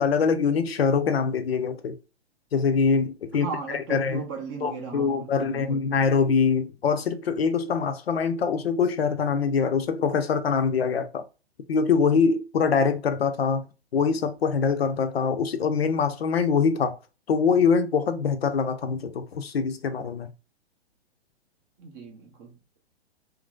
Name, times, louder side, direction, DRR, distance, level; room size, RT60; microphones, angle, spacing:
voice 1, 0.0-2.0 2.5-4.2 4.6-11.2 11.7-13.7 13.9-17.0 17.3-20.3, left 5 dB, 70° left, 0.5 m, -24 dB
voice 2, 3.3-5.8 21.8-22.5, right 5 dB, 20° right, 0.5 m, -36 dB
2.9 x 2.5 x 2.3 m
figure-of-eight pair, 115°, 32 cm